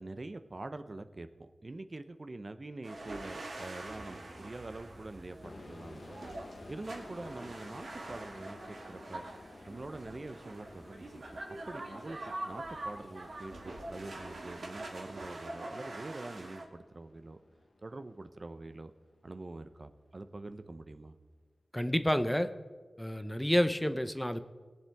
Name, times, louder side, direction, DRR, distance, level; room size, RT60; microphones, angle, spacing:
voice 1, 0.0-6.2 6.7-9.2 9.7-17.4 17.8-18.9 19.2-21.1, right 2 dB, 45° right, 9 dB, 0.8 m, -45 dB
sound 1, 2.8-16.7, right 2 dB, 85° right, 1.8 m, -44 dB
sound 2, 3.8-14.1, right 1 dB, 30° right, 2.1 m, -58 dB
sound 3, 5.4-18.9, left 2 dB, 60° left, 1.3 m, -54 dB
voice 2, 21.7-22.5 23.0-24.4, equal, 10° left, 10 dB, 0.8 m, -29 dB
21.0 x 7.6 x 3.6 m, 1.4 s
cardioid pair, 45°, 0 cm